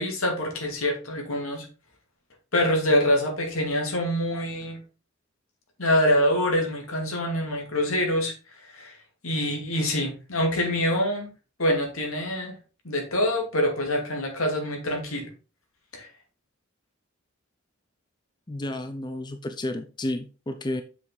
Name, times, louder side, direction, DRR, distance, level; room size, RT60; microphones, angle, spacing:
voice 1, 0.0-1.7 2.5-4.8 5.8-8.3 8.7-9.0 9.2-11.3 11.6-12.5 12.8-15.3 15.9-16.1, left 1 dB, 80° left, 2 dB, 2.7 m, -25 dB
voice 2, 18.5-20.8, left 1 dB, 20° left, 8 dB, 0.5 m, -31 dB
6.9 x 6.1 x 4.0 m, 0.33 s
head